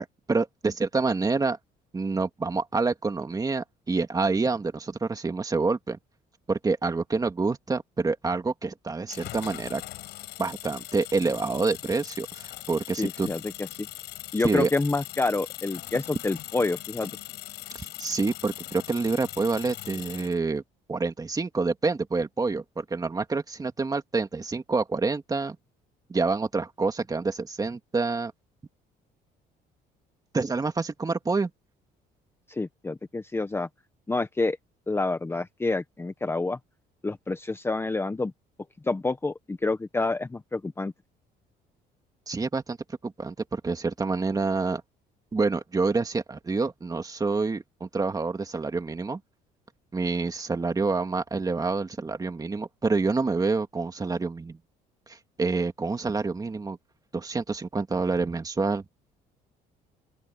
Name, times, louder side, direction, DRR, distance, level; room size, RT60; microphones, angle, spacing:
voice 1, 0.0-1.6 1.9-6.0 6.5-9.8 10.4-13.3 14.4-14.7 17.7-20.6 20.9-25.6 26.1-28.3 30.3-31.5 42.3-42.8 43.0-44.8 45.3-49.2 49.9-54.6 55.1-56.8 57.1-58.8, right 4 dB, 20° right, 2.4 m, -27 dB
sound 1, 9.1-20.4, left 16 dB, 80° left, 7.3 m, -40 dB
voice 2, 13.0-13.5 13.8-13.9 14.3-17.1 32.5-33.7 34.1-34.6 34.9-36.6 37.0-38.3 38.8-40.9, left 3 dB, 15° left, 1.0 m, -28 dB
open air
cardioid pair, 110°, 17 cm